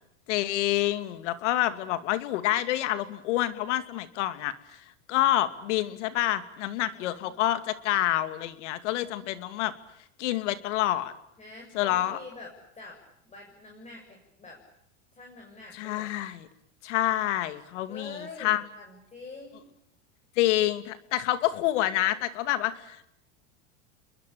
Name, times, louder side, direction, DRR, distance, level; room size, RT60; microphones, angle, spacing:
voice 1, 0.3-4.5 5.1-9.7 10.2-11.1 11.7-12.2 15.7-16.5 16.8-18.6 20.4-23.1, left 14 dB, 75° left, 11 dB, 2.6 m, -27 dB
voice 2, 6.8-7.3 11.4-14.6 15.1-16.1 17.9-19.6, left 3 dB, 20° left, 1 dB, 7.0 m, -46 dB
30.0 x 22.5 x 8.6 m, 0.76 s
supercardioid pair, 120°, 36 cm